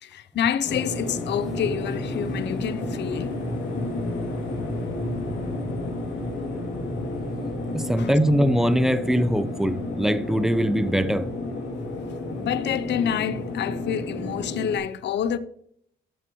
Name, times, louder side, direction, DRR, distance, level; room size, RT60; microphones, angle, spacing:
voice 1, 0.0-3.4 8.0-8.2 12.3-15.4, left 9 dB, 60° left, 0.7 m, -28 dB
sound 1, 0.6-14.8, left 2 dB, 80° left, 2.8 m, -31 dB
voice 2, 7.7-11.3, equal, ahead, 0.7 m, -22 dB
13.0 x 7.7 x 3.1 m
cardioid pair, 90°, 20 cm